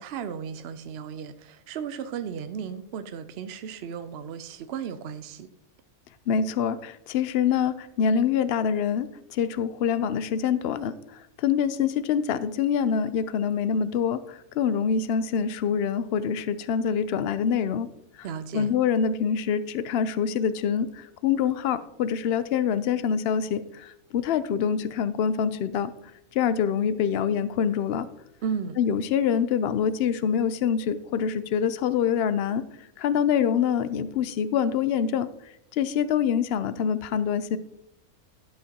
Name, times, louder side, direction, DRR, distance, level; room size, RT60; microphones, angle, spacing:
voice 1, 0.0-5.5 18.2-18.7 28.4-28.8, right 7 dB, 65° right, 10 dB, 0.6 m, -35 dB
voice 2, 6.3-17.9 18.2-18.3 18.5-25.9 26.3-28.1 28.8-32.6 33.0-35.3 35.7-37.6, left 7 dB, 65° left, 14 dB, 0.6 m, -25 dB
12.0 x 7.7 x 2.8 m, 0.79 s
omnidirectional pair, 1.5 m